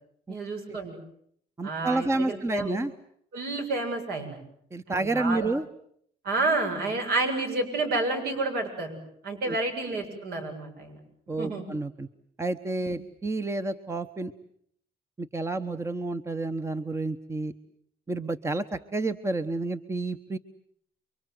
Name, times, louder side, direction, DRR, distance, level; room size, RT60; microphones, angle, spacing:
voice 1, 0.3-1.0 1.6-2.8 3.3-4.4 4.9-5.5 6.2-9.0 9.2-11.0 11.4-11.6 12.8-12.9, right 2 dB, 65° right, 5 dB, 7.6 m, -30 dB
voice 2, 1.6-2.9 4.7-5.6 9.4-9.6 11.3-12.1 12.4-14.3 15.2-17.5 18.1-20.4, right 2 dB, 15° right, 10 dB, 1.1 m, -30 dB
29.5 x 24.0 x 7.8 m, 0.67 s
cardioid pair, 110°, 17 cm